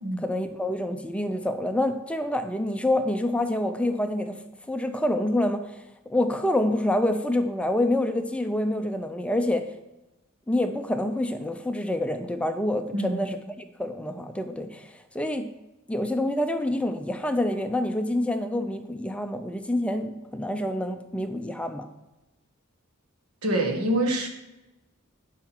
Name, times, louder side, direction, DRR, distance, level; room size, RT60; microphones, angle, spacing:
voice 1, 0.2-4.4 4.7-5.8 6.1-9.7 10.5-13.4 13.8-15.5 15.9-21.9, left 1 dB, 5° left, 7 dB, 0.5 m, -27 dB
voice 2, 12.9-13.2 23.4-24.3, right 1 dB, 90° right, 2 dB, 1.6 m, -25 dB
11.0 x 5.0 x 4.5 m, 1.0 s
head